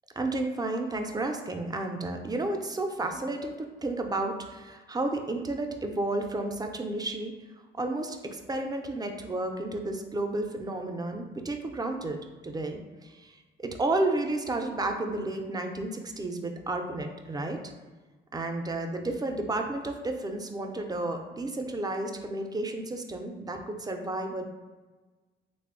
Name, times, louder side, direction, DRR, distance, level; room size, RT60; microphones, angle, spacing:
voice 1, 0.2-7.3 7.8-12.2 12.4-13.3 13.6-17.6 18.3-24.4, right 2 dB, 20° right, 4 dB, 0.4 m, -32 dB
3.1 x 2.0 x 3.6 m, 1.3 s
cardioid pair, 90°, 20 cm